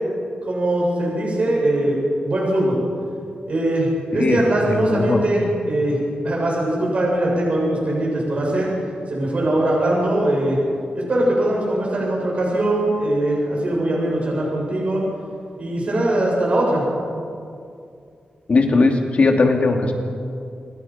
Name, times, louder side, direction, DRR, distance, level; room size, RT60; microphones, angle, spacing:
voice 1, 0.5-2.8 3.5-8.7 9.1-10.6 10.9-15.0 15.6-16.8, right 1 dB, 45° right, -4 dB, 7.8 m, -21 dB
voice 2, 4.1-5.2 18.5-19.9, left 3 dB, 45° left, 3 dB, 2.6 m, -18 dB
27.5 x 22.5 x 5.9 m, 2.4 s
wide cardioid pair, 150°, 3 cm